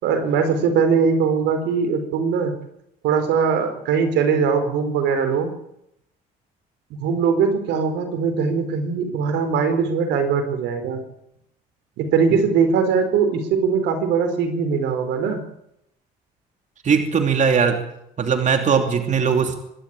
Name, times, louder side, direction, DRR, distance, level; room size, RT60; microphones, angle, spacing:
voice 1, 0.0-2.5 3.0-5.5 7.0-11.0 12.0-15.4, right 6 dB, 80° right, 8 dB, 4.6 m, -21 dB
voice 2, 16.8-17.8 18.2-19.5, right 6 dB, 45° right, 5 dB, 2.9 m, -19 dB
25.0 x 12.0 x 9.0 m, 0.79 s
supercardioid pair, 85°, 18 cm